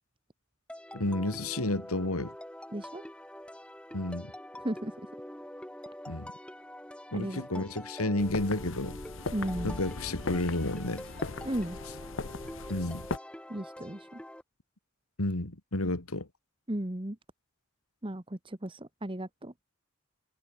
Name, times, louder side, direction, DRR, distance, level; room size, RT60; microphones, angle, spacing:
sound 1, 0.7-14.4, left 1 dB, 5° left, 1.5 m, -45 dB
voice 1, 0.9-2.3 3.9-4.3 6.1-6.3 7.1-9.0 9.6-11.0 12.7-13.1 15.2-16.3, left 2 dB, 85° left, 2.6 m, -31 dB
voice 2, 2.7-3.0 4.6-4.9 7.1-7.6 9.3-9.8 11.4-11.8 13.5-14.2 16.7-17.2 18.0-19.5, right 1 dB, 25° right, 1.4 m, -35 dB
sound 2, 8.2-13.2, left 3 dB, 60° left, 1.1 m, -38 dB
head